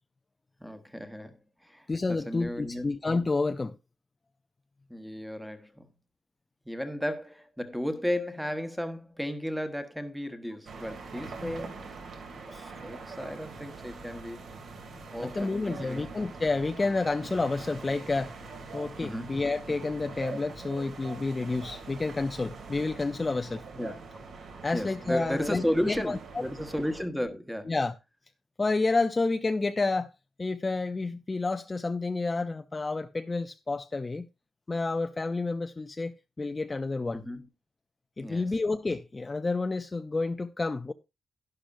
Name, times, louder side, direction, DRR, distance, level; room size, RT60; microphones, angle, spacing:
voice 1, 0.6-3.0 4.9-5.9 6.6-11.9 12.8-14.5 14.9-16.1 19.0-19.3 23.7-23.9 24.7-27.7 37.1-37.5 38.2-38.5, equal, ahead, 1.2 m, -34 dB
voice 2, 1.9-3.8 11.4-11.5 12.5-12.7 15.2-18.4 18.7-23.6 24.6-26.2 27.7-27.9 28.6-30.1 30.4-34.3 34.7-37.2 38.2-40.9, left 3 dB, 20° left, 0.5 m, -30 dB
sound 1, 10.7-27.0, right 4 dB, 60° right, 2.7 m, -43 dB
11.5 x 11.5 x 2.6 m
wide cardioid pair, 145°, 0 cm